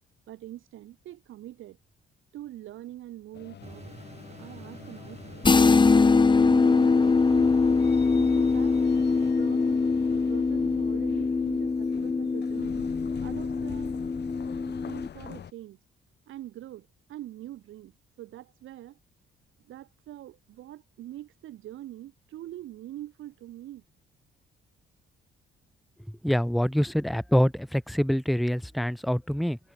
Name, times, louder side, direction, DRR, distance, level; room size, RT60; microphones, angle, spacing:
voice 1, 0.3-1.8 2.3-4.0 4.3-5.4 5.8-8.8 9.3-12.9 13.2-14.0 14.7-15.8 16.3-17.9 18.2-19.0 19.7-23.8, right 14 dB, 85° right, 6.8 m, -44 dB
sound 1, 3.3-15.5, left 9 dB, 60° left, 2.1 m, -45 dB
sound 2, 3.6-9.3, right 4 dB, 35° right, 6.4 m, -47 dB
sound 3, 5.4-15.1, left 4 dB, 25° left, 1.0 m, -23 dB
voice 2, 26.2-29.6, equal, ahead, 0.5 m, -25 dB
cardioid pair, 90°, 20 cm